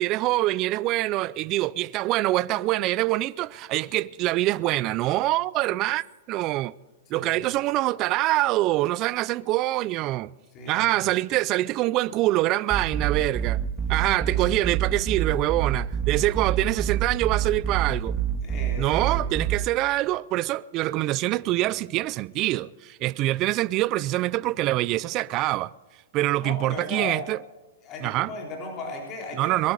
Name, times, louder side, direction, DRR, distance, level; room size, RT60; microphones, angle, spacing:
voice 1, 0.0-6.7 7.1-10.3 10.7-13.6 13.9-18.2 18.8-25.7 26.1-27.4 28.0-28.3 29.3-29.7, right 17 dB, 30° right, 0.4 m, -25 dB
voice 2, 7.1-7.5 10.5-10.8 14.2-14.5 18.4-19.3 26.4-27.2 27.8-29.7, left 3 dB, 30° left, 3.7 m, -37 dB
sound 1, 12.7-19.6, right 8 dB, 15° right, 1.8 m, -27 dB
22.0 x 11.5 x 4.9 m
hypercardioid pair, 145°, 0 cm